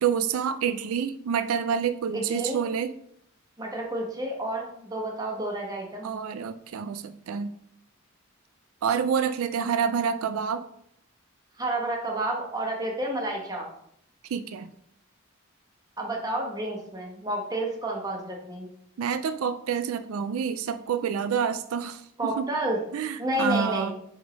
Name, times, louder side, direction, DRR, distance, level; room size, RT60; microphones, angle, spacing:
voice 1, 0.0-2.9 6.0-7.5 8.8-10.7 14.3-14.7 19.0-22.0 22.4-22.5 22.9-23.9, right 7 dB, 85° right, 12 dB, 0.4 m, -28 dB
voice 2, 2.1-2.6 3.6-6.1 11.6-13.7 16.0-18.7 22.2-22.8 23.2-23.9, right 1 dB, 20° right, 0 dB, 1.2 m, -30 dB
5.9 x 3.7 x 5.0 m, 0.71 s
head